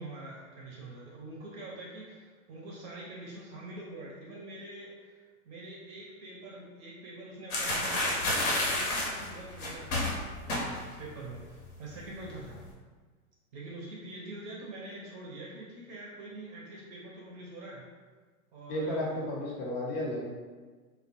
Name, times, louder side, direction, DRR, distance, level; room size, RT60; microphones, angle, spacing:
voice 1, 0.0-10.1 10.4-12.6 13.5-17.9 18.5-19.1, right 2 dB, 30° right, -4 dB, 0.5 m, -45 dB
sound 1, 7.5-11.1 11.3-11.6 11.9-12.6, left 1 dB, 75° left, 0.9 m, -30 dB
voice 2, 18.7-20.2, left 1 dB, 40° left, -3 dB, 0.7 m, -33 dB
2.1 x 2.1 x 2.9 m, 1.4 s
hypercardioid pair, 105°, 43 cm